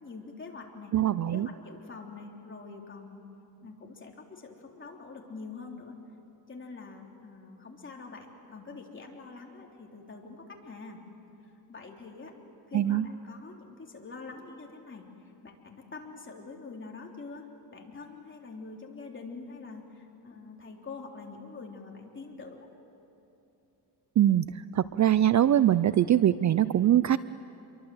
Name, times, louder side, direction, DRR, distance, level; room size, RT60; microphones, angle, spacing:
voice 1, 0.0-0.9 1.3-3.2 3.6-5.9 6.5-11.0 11.7-12.3 12.7-15.1 15.4-22.7, left 4 dB, 30° left, 0 dB, 3.5 m, -45 dB
voice 2, 0.9-1.5 12.7-13.1 24.2-24.5 24.7-27.2, right 11 dB, 45° right, 15 dB, 0.5 m, -22 dB
28.0 x 23.5 x 7.9 m, 2.9 s
cardioid pair, 125°, 41 cm